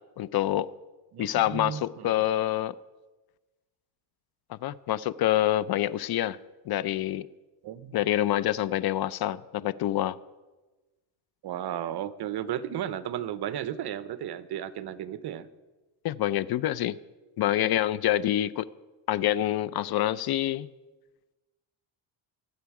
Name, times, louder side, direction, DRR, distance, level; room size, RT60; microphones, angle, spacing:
voice 1, 0.2-0.7 1.2-2.7 4.5-6.4 6.7-7.3 7.9-10.2 16.0-16.9 17.4-18.7 19.1-20.7, left 13 dB, 50° left, 18 dB, 0.5 m, -26 dB
voice 2, 1.1-2.1 7.6-8.0 11.4-15.5, right 10 dB, 55° right, 14 dB, 0.9 m, -34 dB
23.5 x 8.1 x 4.8 m, 1.2 s
cardioid pair, 115°, 48 cm